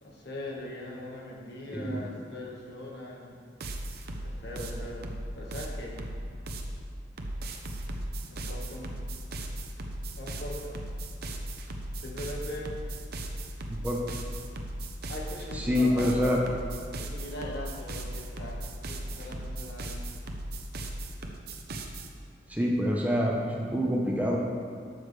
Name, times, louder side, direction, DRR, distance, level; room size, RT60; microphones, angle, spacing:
voice 1, 0.0-3.4 4.2-6.0 8.3-8.9 10.2-10.8 12.0-12.7 15.1-16.4 17.0-20.0, left 1 dB, 65° left, -2 dB, 1.6 m, -40 dB
voice 2, 1.7-2.1 13.7-14.0 15.5-16.4 22.5-24.4, equal, 10° right, -2 dB, 0.9 m, -26 dB
sound 1, 3.6-6.7 7.2-22.1, right 1 dB, 60° right, 0.8 m, -37 dB
12.0 x 6.5 x 3.3 m, 2.2 s
head